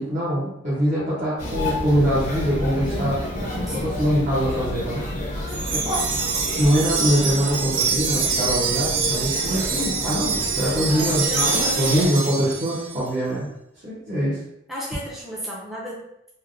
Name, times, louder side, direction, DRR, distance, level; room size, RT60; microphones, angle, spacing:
voice 1, 0.0-3.2 3.7-5.1 5.7-6.0 6.6-11.2 11.8-13.5 13.8-14.4, equal, 40° right, -11 dB, 0.8 m, -23 dB
sound 1, 1.4-12.1, left 1 dB, 40° left, 0.7 m, -30 dB
Wind chime, 5.5-13.0, right 5 dB, 75° right, 0.4 m, -25 dB
voice 2, 11.0-12.4 14.7-16.1, equal, ahead, -7 dB, 0.5 m, -34 dB
3.2 x 2.2 x 2.5 m, 0.80 s
head